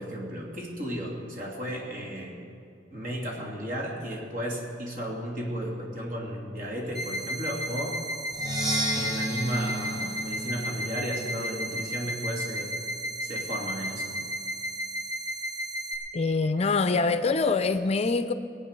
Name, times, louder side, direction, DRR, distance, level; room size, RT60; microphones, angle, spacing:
voice 1, 0.0-2.4 2.9-8.0 8.9-12.8 13.2-14.2, equal, 50° right, -2 dB, 3.0 m, -34 dB
sound 1, 6.9-15.9, right 1 dB, 65° right, 4.1 m, -34 dB
Percussion, 8.3-12.1, equal, 25° right, 2.8 m, -33 dB
voice 2, 16.1-18.3, left 4 dB, 35° left, 11 dB, 0.5 m, -24 dB
22.0 x 8.7 x 6.8 m, 2.5 s
head